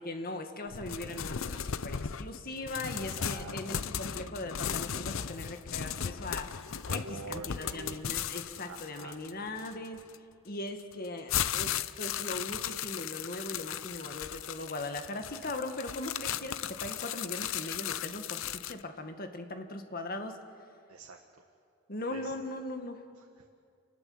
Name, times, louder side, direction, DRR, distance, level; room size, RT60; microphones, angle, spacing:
voice 1, 0.0-10.0 10.5-20.4 21.9-23.0, left 2 dB, 45° left, 6 dB, 1.8 m, -39 dB
sound 1, 0.7-10.2 10.8-18.8, left 9 dB, 65° left, 0.6 m, -36 dB
voice 2, 2.9-3.8 6.8-8.0 8.7-9.2 20.9-21.4 22.1-22.3 23.1-23.5, right 3 dB, 90° right, 3 dB, 1.6 m, -46 dB
28.0 x 20.0 x 8.0 m, 2.4 s
head